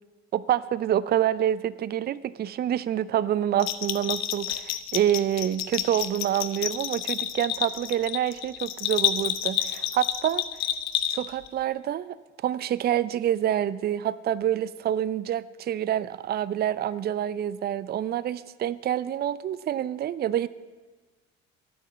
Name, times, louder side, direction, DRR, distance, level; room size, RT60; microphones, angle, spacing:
voice 1, 0.3-10.4 11.1-12.2 12.4-20.5, right 11 dB, 30° right, 18 dB, 0.5 m, -27 dB
Bell, 3.6-11.5, left 12 dB, 55° left, 0.9 m, -29 dB
13.5 x 9.5 x 7.0 m, 1.3 s
figure-of-eight pair, 55°, 33 cm